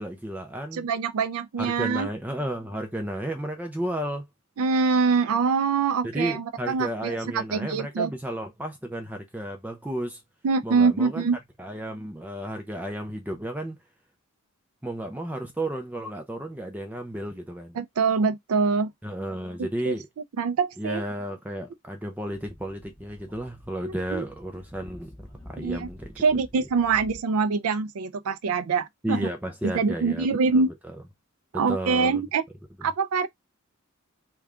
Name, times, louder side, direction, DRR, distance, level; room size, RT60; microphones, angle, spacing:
voice 1, 0.0-0.9 1.6-4.3 6.0-10.2 10.6-11.2 11.6-13.8 14.8-17.8 19.0-20.1 20.8-25.1 25.4-26.1 29.0-30.3 30.5-30.6 31.5-32.2, right 1 dB, 10° right, 0.5 m, -32 dB
voice 2, 0.7-2.1 4.6-8.1 10.4-11.4 17.8-18.9 19.9-20.0 20.4-21.0 23.8-24.2 25.6-25.9 26.2-29.3 29.7-30.7 31.5-32.4 32.8-33.3, right 5 dB, 80° right, 0.4 m, -24 dB
Speech / Wind, 22.3-27.2, left 1 dB, 10° left, 1.4 m, -48 dB
3.4 x 2.3 x 3.7 m
head